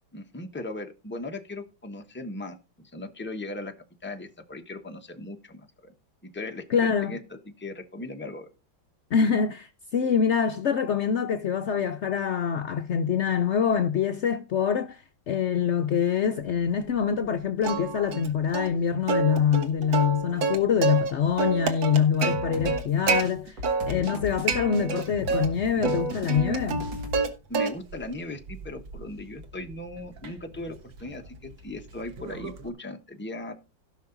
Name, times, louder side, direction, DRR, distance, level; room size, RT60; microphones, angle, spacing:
voice 1, 0.1-3.7 4.0-5.9 6.2-8.5 23.9-24.4 27.5-33.5, left 2 dB, 10° left, 0.7 m, -38 dB
voice 2, 6.7-7.2 9.1-23.6 23.9-26.8, left 7 dB, 85° left, 0.6 m, -25 dB
Plucked string instrument, 17.6-18.3 18.5-18.7 19.1-21.1 21.4-23.2 23.6-24.2 24.5-25.5 25.8-27.3 27.5-28.0 28.5-32.7, right 4 dB, 85° right, 2.1 m, -28 dB
sound 1, 22.3-27.2, left 3 dB, 70° right, 2.6 m, -37 dB
16.5 x 5.8 x 3.9 m
omnidirectional pair, 2.0 m